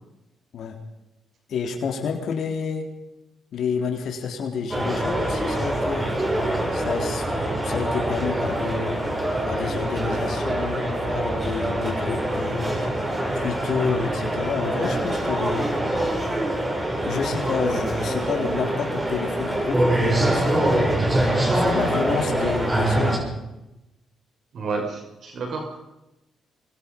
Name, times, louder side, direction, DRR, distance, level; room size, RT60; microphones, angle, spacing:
voice 1, 1.5-2.9 3.5-6.1 6.7-7.3 7.6-9.0 9.4-12.7 13.3-15.7 17.0-20.9 21.5-23.2, left 6 dB, 65° left, 4 dB, 3.8 m, -29 dB
sound 1, 4.7-23.2, right 1 dB, 20° right, 6.9 m, -24 dB
voice 2, 24.5-25.8, right 4 dB, 60° right, 3 dB, 5.7 m, -31 dB
25.0 x 22.0 x 5.5 m, 0.95 s
cardioid pair, 90°, 0 cm